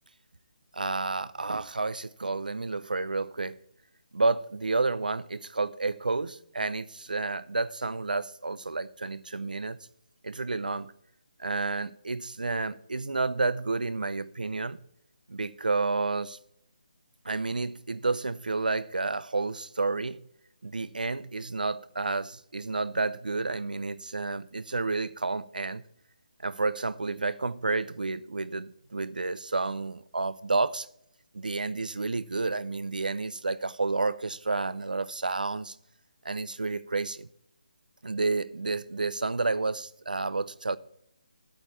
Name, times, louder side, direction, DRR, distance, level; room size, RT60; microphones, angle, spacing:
voice 1, 0.7-3.6 4.1-9.8 10.2-10.9 11.4-14.8 15.3-16.4 17.2-20.2 20.6-25.8 26.4-30.9 31.3-35.7 36.2-37.3 38.0-40.8, right 3 dB, 90° right, 0.7 m, -30 dB
12.0 x 8.7 x 4.2 m
figure-of-eight pair, 160°, 4 cm